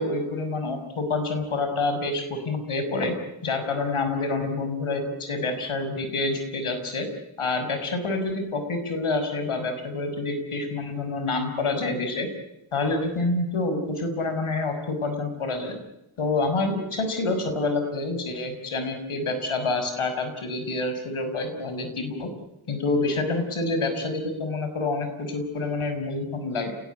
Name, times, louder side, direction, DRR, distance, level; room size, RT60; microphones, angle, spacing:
voice 1, 0.0-3.1 3.4-7.1 7.4-12.3 12.7-15.8 16.2-22.3 22.7-26.7, left 3 dB, 75° left, 7 dB, 6.4 m, -27 dB
30.0 x 19.0 x 9.6 m, 0.85 s
cardioid pair, 55°, 50 cm